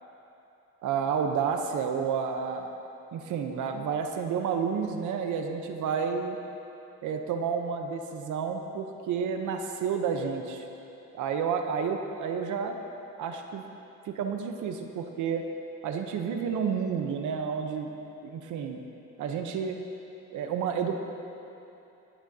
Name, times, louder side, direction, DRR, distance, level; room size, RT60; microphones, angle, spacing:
voice 1, 0.8-2.7 3.1-6.4 7.0-10.6 11.1-12.8 13.2-13.6 14.0-15.5 15.8-17.9 18.2-18.8 19.2-19.8 20.3-21.0, right 6 dB, 80° right, 5 dB, 0.9 m, -30 dB
26.5 x 9.0 x 2.8 m, 2.9 s
cardioid pair, 90°, 30 cm